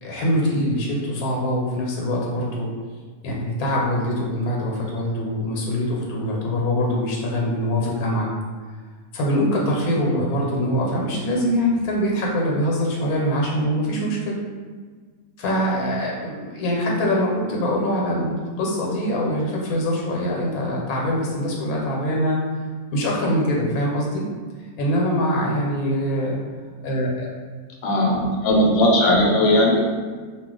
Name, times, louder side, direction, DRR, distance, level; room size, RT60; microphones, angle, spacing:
voice 1, 0.0-2.7 3.2-8.3 9.1-14.4 15.4-22.4 22.9-24.2 24.8-26.4 26.8-27.3, equal, 85° left, -2 dB, 1.1 m, -23 dB
voice 2, 27.8-29.8, left 1 dB, 65° left, -2 dB, 0.9 m, -18 dB
2.4 x 2.2 x 3.7 m, 1.5 s
omnidirectional pair, 1.5 m